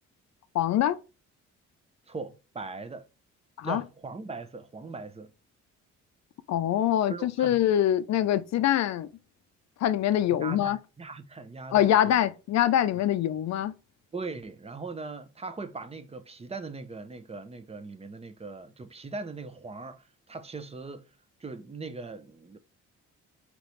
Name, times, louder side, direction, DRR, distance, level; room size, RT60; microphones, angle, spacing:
voice 1, 0.5-1.0 3.6-3.8 6.5-9.1 9.8-10.8 11.7-13.7, left 11 dB, 65° left, 0.5 m, -24 dB
voice 2, 2.1-3.0 3.6-5.3 7.1-7.5 10.4-12.2 12.9-13.0 14.1-21.0 21.4-22.6, right 3 dB, 20° right, 0.6 m, -40 dB
4.1 x 3.0 x 3.1 m
cardioid pair, 90°, 30 cm